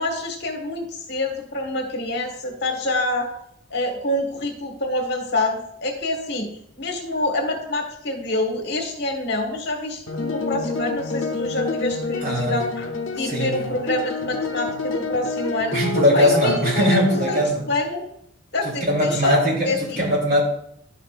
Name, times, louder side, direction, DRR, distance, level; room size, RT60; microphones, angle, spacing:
voice 1, 0.0-3.3 3.7-6.5 6.8-12.9 13.1-15.8 16.1-16.5 16.9-17.4 17.7-18.0 18.5-19.4 19.6-20.0, left 2 dB, 55° left, 2 dB, 1.6 m, -26 dB
sound 1, 10.1-17.4, left 3 dB, 75° left, 0.8 m, -28 dB
voice 2, 12.2-12.6 13.2-13.6 15.7-17.7 18.6-20.4, equal, 45° right, -3 dB, 3.1 m, -20 dB
11.0 x 6.7 x 2.5 m, 0.72 s
head